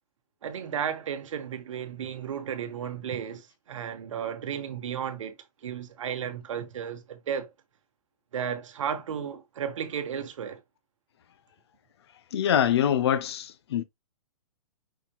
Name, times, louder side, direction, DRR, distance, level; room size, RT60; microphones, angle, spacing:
voice 1, 0.4-5.4 5.6-7.5 8.3-10.6, right 8 dB, 55° right, 1.0 m, -34 dB
voice 2, 12.3-13.8, left 9 dB, 45° left, 0.5 m, -24 dB
5.7 x 2.7 x 2.9 m
hypercardioid pair, 180°, 19 cm